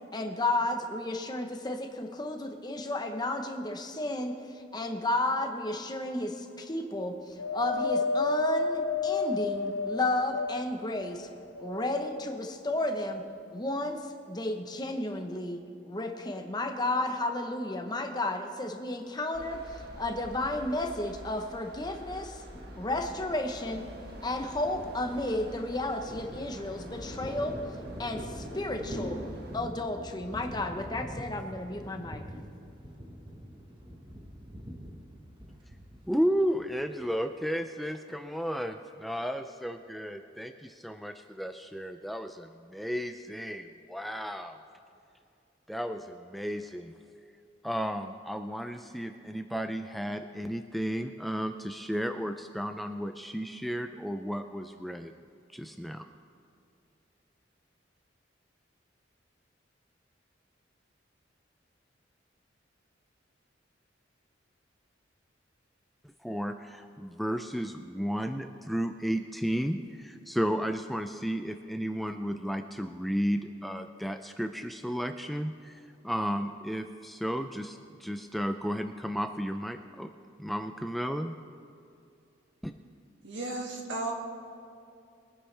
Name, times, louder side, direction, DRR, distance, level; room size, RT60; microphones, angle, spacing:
voice 1, 0.1-4.3 4.7-11.3 11.6-13.2 13.5-15.6 15.8-19.6 20.0-22.4 22.8-23.8 24.2-27.6 28.0-29.2 29.5-32.2, left 2 dB, 20° left, 4 dB, 0.9 m, -32 dB
Wind, 7.4-10.9 11.5-12.5 13.3-13.4, left 4 dB, 80° left, 0.5 m, -31 dB
sound 1, 19.3-29.6, equal, 55° right, 1.6 m, -48 dB
Thunder, 22.5-37.3, equal, 25° right, 1.3 m, -44 dB
voice 2, 36.1-44.6 45.7-46.9 47.6-55.1 55.5-56.0 66.2-80.1 80.4-81.4 82.6-82.7, equal, ahead, 7 dB, 0.3 m, -33 dB
voice 3, 83.2-84.1, right 2 dB, 75° right, 0 dB, 2.1 m, -34 dB
23.0 x 9.9 x 3.4 m, 2.6 s
head